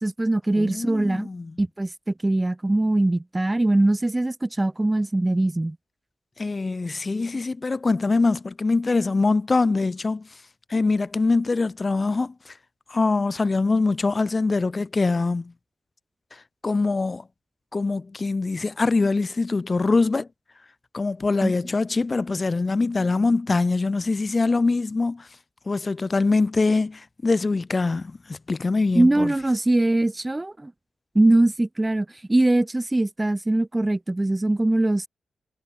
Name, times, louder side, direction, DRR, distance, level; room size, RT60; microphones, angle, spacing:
voice 1, 0.0-1.3 1.6-5.8 21.4-21.5 28.9-30.7 31.1-35.1, right 2 dB, 15° right, 2.1 m, -22 dB
voice 2, 0.5-1.5 6.4-10.3 10.7-12.5 12.9-15.5 16.3-17.2 17.7-20.3 20.9-25.3 25.7-29.3, left 3 dB, 25° left, 3.0 m, -23 dB
wide cardioid pair, 130°, 0 cm